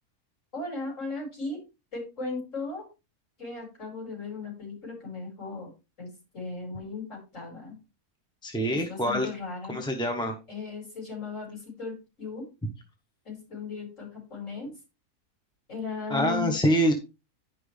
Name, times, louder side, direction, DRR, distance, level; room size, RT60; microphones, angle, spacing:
voice 1, 0.5-1.6 1.9-2.8 3.4-5.7 6.0-7.8 8.7-9.8 10.5-12.5 13.3-14.7 15.7-16.6, left 4 dB, 55° left, -2 dB, 5.6 m, -36 dB
voice 2, 8.4-9.3 9.7-10.4 16.1-16.9, equal, 5° left, 3 dB, 0.9 m, -25 dB
10.5 x 5.9 x 3.3 m, 0.28 s
omnidirectional pair, 1.6 m